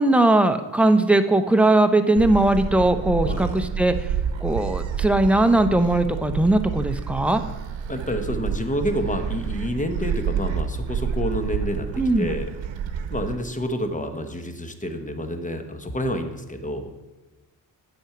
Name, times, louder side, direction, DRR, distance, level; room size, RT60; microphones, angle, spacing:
voice 1, 0.0-4.0 4.4-7.4 12.0-12.3, right 2 dB, 5° right, 7 dB, 0.6 m, -19 dB
Gull seagull, 2.2-13.4, right 7 dB, 90° right, 0.8 m, -29 dB
voice 2, 3.2-3.6 7.9-12.5 13.1-16.9, equal, 15° left, 7 dB, 1.1 m, -28 dB
8.8 x 6.3 x 5.9 m, 1.1 s
cardioid pair, 90°, 45 cm